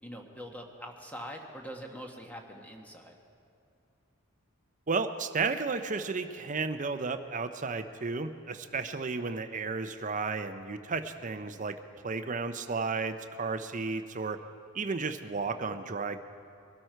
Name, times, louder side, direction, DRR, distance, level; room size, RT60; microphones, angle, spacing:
voice 1, 0.0-3.2 11.4-11.6, equal, 5° left, 2 dB, 1.3 m, -44 dB
voice 2, 4.9-11.8 12.0-14.4 14.7-16.2, right 4 dB, 35° right, 9 dB, 0.7 m, -33 dB
22.5 x 12.5 x 4.5 m, 2.5 s
head